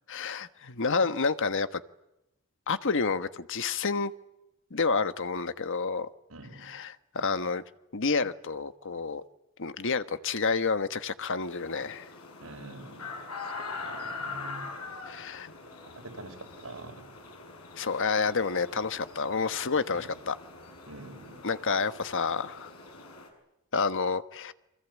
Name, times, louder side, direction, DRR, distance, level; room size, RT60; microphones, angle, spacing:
voice 1, 0.1-1.8 2.7-4.1 4.7-6.1 6.6-7.6 7.9-9.2 9.6-12.1 15.0-15.5 17.8-20.4 21.4-22.7 23.7-24.5, left 4 dB, 60° left, 11 dB, 1.3 m, -29 dB
voice 2, 6.3-6.7 12.4-14.7 16.0-17.0 19.9-20.1 20.9-21.4, right 2 dB, 80° right, 3 dB, 5.8 m, -46 dB
sound 1, 11.4-23.3, left 4 dB, 85° left, 7.7 m, -43 dB
28.0 x 25.5 x 8.4 m, 0.89 s
head